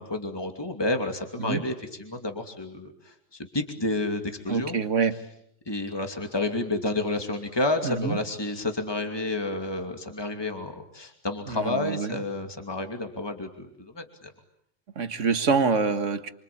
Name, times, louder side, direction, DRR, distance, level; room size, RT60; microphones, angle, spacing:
voice 1, 0.0-1.7 2.0-4.8 5.7-14.3, left 2 dB, 20° left, 5 dB, 2.6 m, -30 dB
voice 2, 4.5-5.2 7.8-8.2 11.5-12.2 15.0-16.3, right 5 dB, 75° right, 10 dB, 1.9 m, -26 dB
27.5 x 25.0 x 8.6 m, 0.71 s
omnidirectional pair, 1.3 m